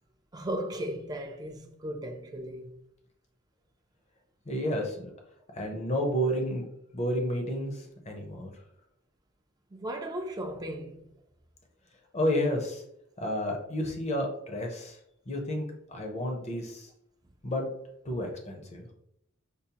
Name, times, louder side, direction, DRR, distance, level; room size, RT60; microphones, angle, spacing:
voice 1, 0.3-2.8 9.7-11.1, right 1 dB, 20° right, 0.4 m, -36 dB
voice 2, 4.5-5.1 5.6-6.6 6.9-8.5 12.1-12.8 13.2-15.0 15.3-16.9 17.4-17.7 18.0-18.9, equal, 35° left, 0.7 m, -31 dB
5.3 x 2.0 x 2.8 m
head